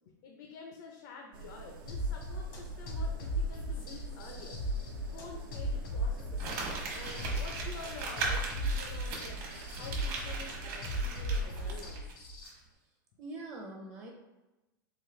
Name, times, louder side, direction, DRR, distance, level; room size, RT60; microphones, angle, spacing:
voice 1, 0.1-4.6 5.1-6.4 6.9-9.4 9.8-12.2, left 4 dB, 60° left, 2 dB, 0.5 m, -48 dB
sound 1, 1.3-11.9, right 4 dB, 75° right, 0.5 m, -47 dB
sound 2, 1.9-12.5, equal, 85° left, 1.3 m, -36 dB
Crumpling crinkling, 6.4-12.1 12.4-12.5, right 3 dB, 50° right, 1.0 m, -39 dB
voice 2, 13.2-14.1, right 2 dB, 25° right, -1 dB, 0.6 m, -44 dB
4.0 x 2.4 x 3.1 m, 1.1 s
supercardioid pair, 145°, 12 cm